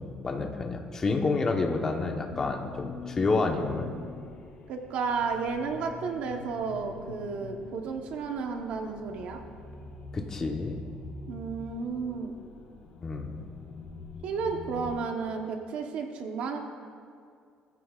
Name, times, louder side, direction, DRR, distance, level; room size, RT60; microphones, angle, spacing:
voice 1, 0.0-3.9 10.1-10.8 13.0-13.5, left 3 dB, 20° left, 2 dB, 1.0 m, -29 dB
sound 1, 2.3-15.0, left 4 dB, 50° left, 1.1 m, -45 dB
voice 2, 4.7-9.4 11.3-12.3 14.2-16.6, right 5 dB, 55° right, 3 dB, 1.0 m, -32 dB
20.0 x 14.5 x 2.4 m, 2.3 s
cardioid pair, 175°, 3 cm